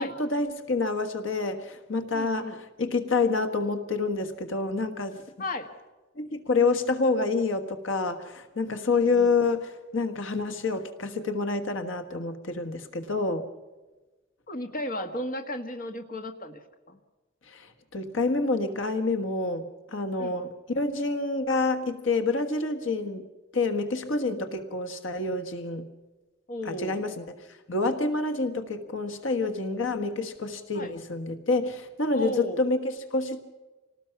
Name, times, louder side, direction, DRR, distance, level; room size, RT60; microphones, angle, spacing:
voice 1, 0.0-2.5 2.8-5.2 6.2-13.5 17.5-19.6 19.9-23.3 23.5-25.9 26.7-33.4, left 3 dB, 70° left, 8 dB, 1.5 m, -28 dB
voice 2, 2.1-2.6 5.4-5.7 9.0-9.3 14.5-17.0 20.2-20.4 24.2-24.6 26.5-27.0 30.0-30.1 30.7-30.9 32.1-32.6, left 1 dB, 45° left, 6 dB, 1.6 m, -35 dB
27.0 x 19.0 x 5.9 m, 1.2 s
head